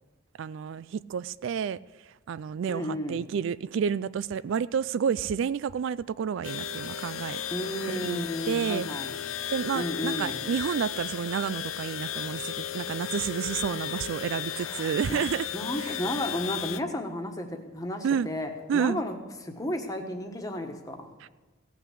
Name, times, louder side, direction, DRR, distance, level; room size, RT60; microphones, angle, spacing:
voice 1, 0.4-7.4 7.9-8.9 9.5-15.5 15.8-16.0 18.0-18.3 18.7-19.0 21.2-21.3, right 7 dB, 65° right, 0.3 m, -30 dB
voice 2, 2.7-3.2 7.5-9.2 9.7-10.4 14.6-15.2 15.5-19.1 19.4-21.1, left 1 dB, 15° left, 1.4 m, -33 dB
sound 1, 6.4-16.8, left 9 dB, 75° left, 0.4 m, -35 dB
16.5 x 6.0 x 8.4 m
head